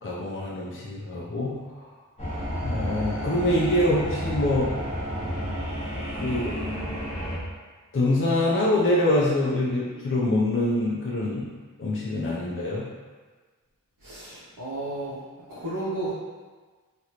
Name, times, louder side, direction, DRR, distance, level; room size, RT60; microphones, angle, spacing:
voice 1, 0.0-1.6 2.6-4.7 6.2-6.7 7.9-11.5 11.8-12.9, left 1 dB, 40° left, -6 dB, 0.5 m, -25 dB
sound 1, 2.2-7.4, equal, 20° left, 1.0 m, -31 dB
voice 2, 14.0-15.2 15.5-16.1, right 2 dB, 85° right, -9 dB, 0.7 m, -33 dB
3.0 x 2.5 x 2.9 m, 1.4 s
wide cardioid pair, 50°, 33 cm